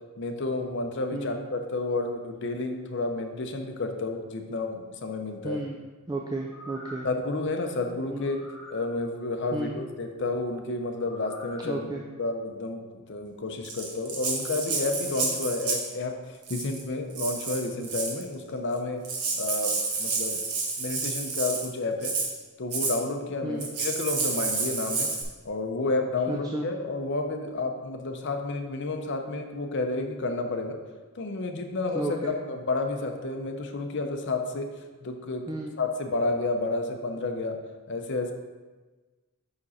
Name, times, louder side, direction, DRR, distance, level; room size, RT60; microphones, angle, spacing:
voice 1, 0.2-5.6 7.0-8.4 8.7-11.9 12.2-12.8 13.1-19.0 19.3-20.4 20.8-22.1 22.6-25.1 25.4-30.8 31.2-34.7 35.0-35.4 35.8-37.6 37.9-38.3, left 2 dB, 55° left, 5 dB, 0.7 m, -30 dB
voice 2, 1.1-1.5 5.4-5.8 6.1-7.1 8.1-8.4 9.5-9.8 11.6-12.0 23.4-23.7 26.3-26.7 31.9-32.3 35.5-35.8, right 1 dB, 15° right, 1 dB, 0.4 m, -33 dB
sound 1, 6.4-7.2 8.2-8.9 11.0-11.6 12.1-12.2, equal, 5° left, 1.9 m, -45 dB
Rattle (instrument), 13.6-15.9 16.4-16.8 17.1-18.2 18.8-18.9 19.0-21.7 22.0-22.3 22.7-23.0 23.6-25.2, right 4 dB, 90° right, 1.1 m, -30 dB
5.9 x 5.3 x 4.1 m, 1.3 s
head